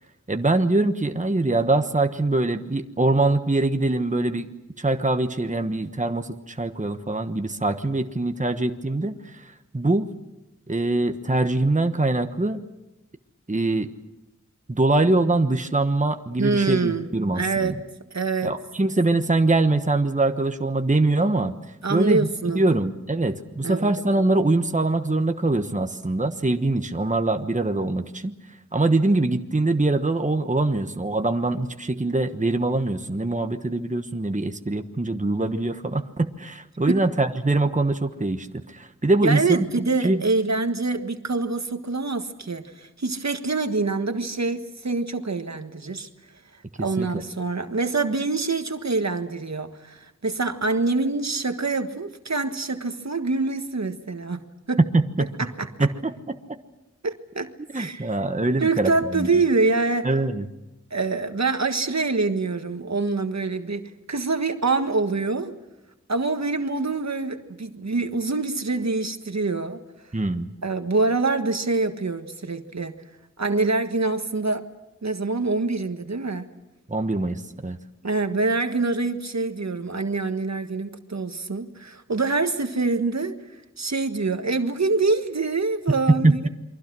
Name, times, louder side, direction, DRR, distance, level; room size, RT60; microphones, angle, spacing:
voice 1, 0.3-4.5 4.8-10.1 10.7-12.6 13.5-13.9 14.7-17.8 18.4-21.5 21.9-28.3 28.7-39.6 40.0-40.2 47.0-47.2 54.9-55.3 55.8-56.1 57.7-59.3 60.0-60.5 70.1-70.5 76.9-77.8 86.2-86.5, right 2 dB, 25° right, 7 dB, 1.2 m, -23 dB
voice 2, 16.4-17.1 17.3-17.8 18.1-18.5 21.8-22.8 23.6-24.0 36.9-37.1 39.2-46.1 46.8-54.8 55.4-55.9 57.0-58.1 58.6-60.1 60.9-65.5 66.1-69.8 70.6-73.0 73.4-74.7 75.0-76.5 78.0-83.4 83.8-86.5, right 3 dB, 65° right, 7 dB, 1.5 m, -25 dB
28.5 x 23.5 x 6.2 m, 0.94 s
wide cardioid pair, 50°, 29 cm